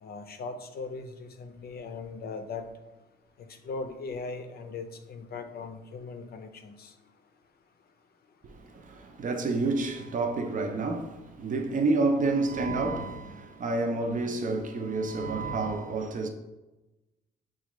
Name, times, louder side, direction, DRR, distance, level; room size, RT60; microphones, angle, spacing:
voice 1, 0.0-2.7 3.6-6.9, left 4 dB, 50° left, 0.6 m, -39 dB
voice 2, 8.4-16.3, right 3 dB, 40° right, 0.6 m, -29 dB
6.2 x 2.4 x 3.0 m
cardioid pair, 90°, 20 cm